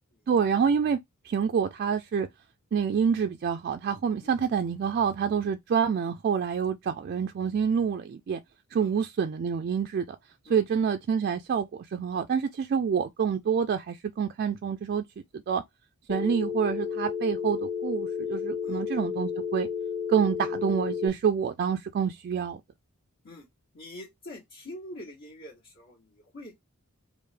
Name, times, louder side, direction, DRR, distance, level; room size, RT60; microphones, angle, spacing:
voice 1, 0.3-1.0 1.2-2.3 2.7-8.4 8.7-10.0 10.5-15.0 15.5-15.6 16.1-19.7 20.1-22.6, right 7 dB, 45° right, 0.3 m, -27 dB
Telephone, 16.1-21.1, left 7 dB, ahead, 0.6 m, -32 dB
voice 2, 23.7-26.5, left 1 dB, 55° left, 1.3 m, -45 dB
3.2 x 2.5 x 3.3 m
head